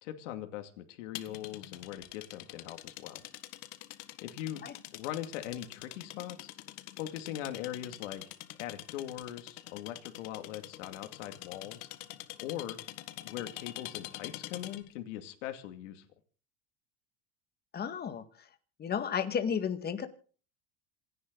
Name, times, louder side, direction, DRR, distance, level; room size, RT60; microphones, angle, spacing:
voice 1, 0.0-3.2 4.2-4.6 4.9-6.5 7.0-8.2 8.6-11.9 12.4-12.8 13.2-16.1, left 12 dB, 85° left, 6 dB, 2.5 m, -41 dB
sound 1, 1.1-14.9, left 16 dB, 60° left, 1.7 m, -45 dB
voice 2, 17.7-18.5 18.8-20.1, left 7 dB, 25° left, 9 dB, 2.0 m, -33 dB
27.0 x 10.5 x 4.0 m, 0.41 s
supercardioid pair, 130°, 36 cm